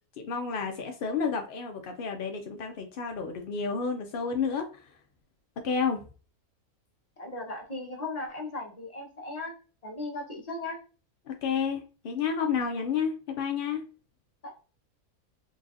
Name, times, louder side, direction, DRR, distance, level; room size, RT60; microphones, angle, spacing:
voice 1, 0.2-4.9 5.6-6.0 11.3-13.8, left 6 dB, 75° left, 0.5 m, -30 dB
voice 2, 7.2-9.5 9.8-10.8 14.4-14.5, left 2 dB, 30° left, 1.0 m, -37 dB
3.9 x 3.1 x 2.4 m
omnidirectional pair, 1.5 m